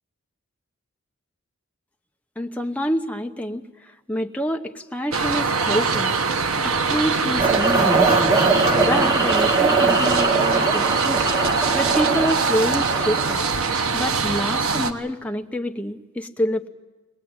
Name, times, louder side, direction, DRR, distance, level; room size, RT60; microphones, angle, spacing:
voice 1, 2.4-3.6 4.1-6.2 6.6-8.1 8.7-11.2 11.7-13.4 13.9-16.7, equal, 5° left, 4 dB, 0.9 m, -27 dB
sound 1, 5.1-14.9, right 4 dB, 85° right, 1.2 m, -22 dB
sound 2, 7.4-13.3, right 3 dB, 20° right, 1.5 m, -22 dB
23.0 x 19.0 x 8.8 m, 1.2 s
head